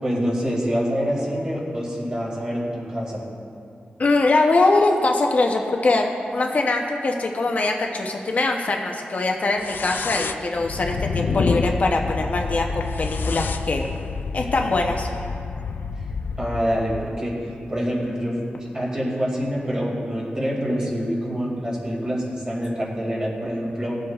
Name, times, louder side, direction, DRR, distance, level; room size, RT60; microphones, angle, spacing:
voice 1, 0.0-3.2 16.4-17.3 17.7-18.4 18.7-24.0, equal, 25° right, -4 dB, 2.2 m, -26 dB
voice 2, 4.0-13.9 14.3-15.1, left 2 dB, 50° left, 1 dB, 0.7 m, -22 dB
sound 1, 9.6-17.1, left 4 dB, 80° left, 0.4 m, -28 dB
20.0 x 7.8 x 2.4 m, 2.5 s
wide cardioid pair, 160°, 3 cm